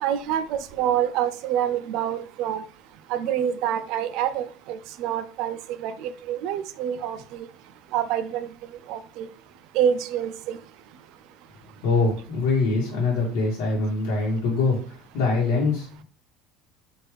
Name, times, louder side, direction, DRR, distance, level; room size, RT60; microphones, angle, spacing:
voice 1, 0.0-2.6 3.1-7.2 7.9-8.5 8.9-9.3 9.7-10.6, right 9 dB, 55° right, 12 dB, 0.4 m, -26 dB
voice 2, 11.8-16.0, left 3 dB, 70° left, -4 dB, 1.2 m, -24 dB
4.6 x 2.5 x 3.3 m, 0.41 s
cardioid pair, 165°, 0 cm